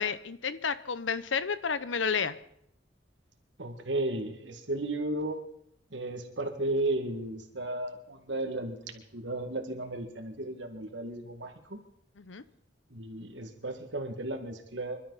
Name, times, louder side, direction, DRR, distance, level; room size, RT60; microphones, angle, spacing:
voice 1, 0.0-2.3 12.2-12.4, left 6 dB, 75° left, 14 dB, 0.8 m, -31 dB
voice 2, 3.6-5.4 5.9-11.8 12.9-15.0, right 2 dB, 65° right, 5 dB, 2.1 m, -34 dB
25.5 x 12.5 x 4.1 m, 0.73 s
head